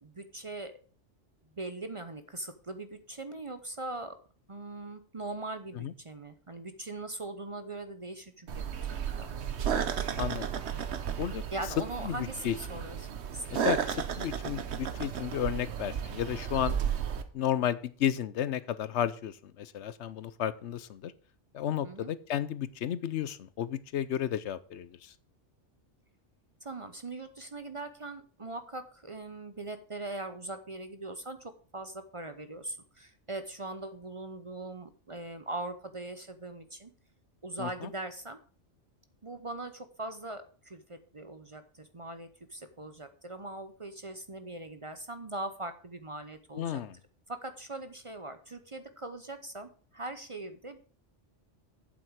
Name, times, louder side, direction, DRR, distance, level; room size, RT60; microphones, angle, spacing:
voice 1, 0.0-0.7 1.6-4.2 4.5-9.5 11.5-13.8 21.8-22.1 26.6-36.9 37.4-38.4 39.2-46.8 47.3-50.8, right 2 dB, 30° right, 9 dB, 0.7 m, -41 dB
sound 1, 8.5-17.2, right 8 dB, 70° right, 1.2 m, -34 dB
voice 2, 12.0-12.8 13.5-16.7 17.3-21.1 21.5-25.1 37.6-37.9 46.5-47.0, left 10 dB, 75° left, 16 dB, 0.9 m, -33 dB
8.6 x 7.7 x 4.7 m, 0.42 s
omnidirectional pair, 1.2 m